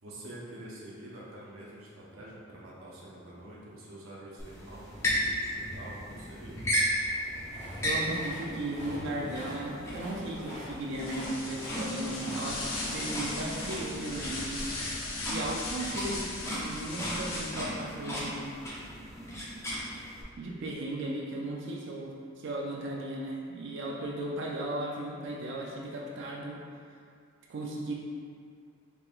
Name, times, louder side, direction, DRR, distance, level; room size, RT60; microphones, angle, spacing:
voice 1, 0.0-6.6, right 1 dB, 75° right, -6 dB, 0.8 m, -46 dB
sound 1, 4.4-20.2, equal, 15° left, 0.5 m, -35 dB
Train, 7.0-15.1, equal, 55° left, 1.5 m, -46 dB
voice 2, 7.8-12.6 12.9-14.6 15.3-18.5 20.4-26.6 27.5-27.9, right 1 dB, 60° right, -2 dB, 0.4 m, -36 dB
sound 2, 10.9-17.8, left 2 dB, 85° left, 0.6 m, -38 dB
3.5 x 3.3 x 2.5 m, 2.2 s
head